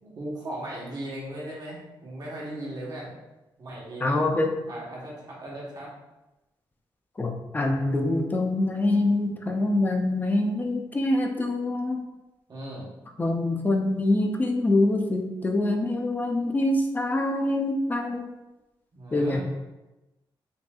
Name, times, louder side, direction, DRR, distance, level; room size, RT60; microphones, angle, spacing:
voice 1, 0.0-3.1 3.6-4.2 4.7-5.9 12.5-12.9 18.9-19.4, right 1 dB, 50° right, -5 dB, 1.2 m, -37 dB
voice 2, 4.0-4.5 7.2-12.0 13.2-18.3 19.1-19.4, left 2 dB, 20° left, 2 dB, 0.5 m, -25 dB
5.3 x 2.6 x 2.3 m, 1.0 s
wide cardioid pair, 140°, 9 cm